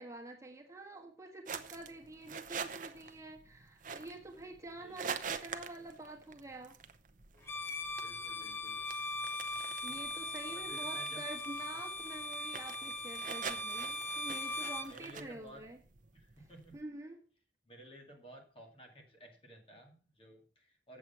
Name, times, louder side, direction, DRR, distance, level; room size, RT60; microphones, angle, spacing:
voice 1, 0.0-6.8 9.8-15.8 16.7-17.2, right 2 dB, 20° right, 0 dB, 1.5 m, -47 dB
sound 1, 1.5-16.8, right 6 dB, 50° right, 0.7 m, -46 dB
voice 2, 4.8-5.2 8.0-8.8 9.9-10.0 10.5-11.2 12.8-13.1 14.9-15.6 16.1-16.8 17.7-21.0, equal, 30° left, 2 dB, 2.2 m, -55 dB
Bowed string instrument, 7.4-14.9, left 1 dB, 15° left, 1.1 m, -39 dB
8.0 x 7.6 x 5.6 m, 0.39 s
head